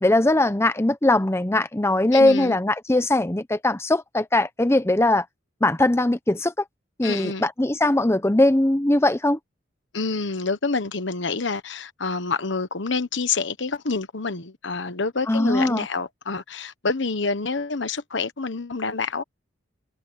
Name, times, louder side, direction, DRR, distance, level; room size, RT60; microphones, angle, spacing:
voice 1, 0.0-5.3 5.6-6.5 7.0-9.4 15.3-15.9, left 1 dB, 15° left, 0.7 m, -20 dB
voice 2, 2.1-2.6 7.0-7.4 9.9-19.2, left 4 dB, 65° left, 1.2 m, -27 dB
head